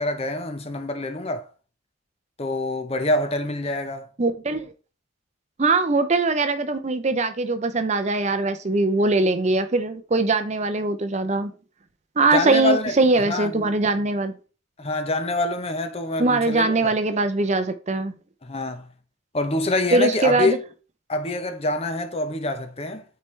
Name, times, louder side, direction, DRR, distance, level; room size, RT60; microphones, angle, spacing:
voice 1, 0.0-1.5 2.4-4.1 12.3-13.7 14.8-16.9 18.4-18.9 19.3-20.6 21.1-23.0, left 2 dB, 30° left, 0.7 m, -26 dB
voice 2, 4.2-4.7 5.6-11.5 12.2-14.3 16.2-18.2 19.9-20.6, right 3 dB, 35° right, 0.6 m, -21 dB
8.7 x 4.4 x 3.2 m
head